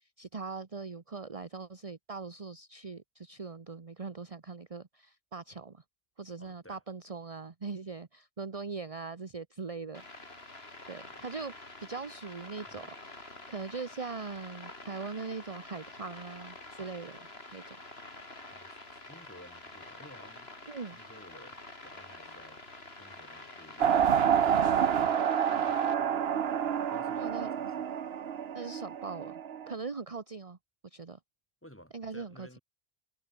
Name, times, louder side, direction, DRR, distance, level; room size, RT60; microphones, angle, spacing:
voice 1, 0.0-5.8 6.2-10.5 10.9-11.5 11.8-12.9 13.2-17.2 17.5-17.8 20.7-21.0 27.2-27.5 28.5-29.4 29.7-30.6 30.9-31.2 31.9-32.5, right 4 dB, 35° right, 1.1 m, -41 dB
voice 2, 6.4-6.8 11.1-11.2 12.7-12.9 18.5-20.5 20.9-22.6 23.0-25.1 25.5-26.2 26.9-27.8 31.6-32.6, equal, 10° left, 6.7 m, -55 dB
sound 1, 9.9-25.9, left 2 dB, 80° left, 4.4 m, -48 dB
sound 2, 23.8-29.7, right 8 dB, 75° right, 1.1 m, -28 dB
omnidirectional pair, 1.0 m